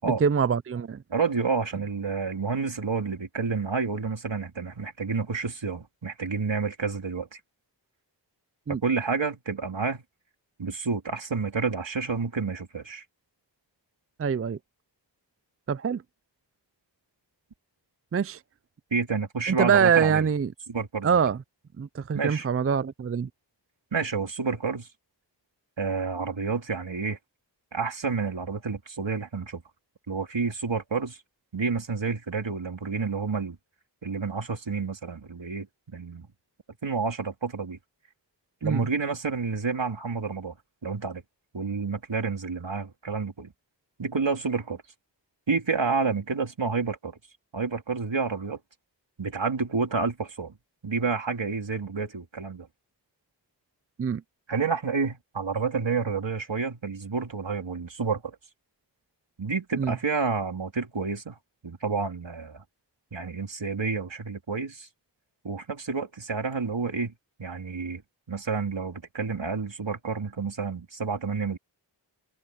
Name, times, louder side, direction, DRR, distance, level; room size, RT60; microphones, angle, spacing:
voice 1, 0.0-1.0 8.7-8.8 14.2-14.6 15.7-16.0 18.1-18.4 19.5-20.5 21.0-21.4 21.8-23.3 38.6-38.9 54.0-54.2 59.8-59.9, right 6 dB, 35° right, 0.4 m, -24 dB
voice 2, 1.1-7.4 8.7-10.0 10.6-13.0 18.9-20.3 20.7-21.1 22.1-22.5 23.9-24.9 25.8-27.2 27.7-29.6 30.1-31.2 31.5-33.6 34.0-36.3 36.8-37.8 38.6-40.5 40.8-41.2 41.5-43.5 44.0-44.8 45.5-47.2 47.5-48.6 49.2-50.5 50.8-52.7 54.5-58.3 59.4-61.4 61.6-62.6 63.1-64.9 65.4-67.1 67.4-68.0 68.3-71.6, right 4 dB, 85° right, 3.6 m, -29 dB
wide cardioid pair, 65°, 44 cm